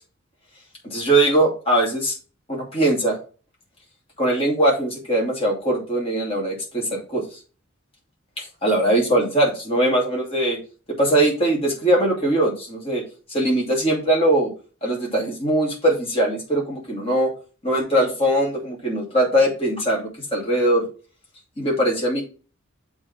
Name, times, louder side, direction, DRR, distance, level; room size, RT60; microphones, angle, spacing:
voice 1, 0.8-2.1 2.5-3.1 4.2-7.2 8.4-10.6 11.0-13.0 13.3-14.5 14.8-17.3 17.6-20.9 21.6-22.2, right 1 dB, 25° left, -3 dB, 2.8 m, -21 dB
7.1 x 3.6 x 6.0 m, 0.36 s
head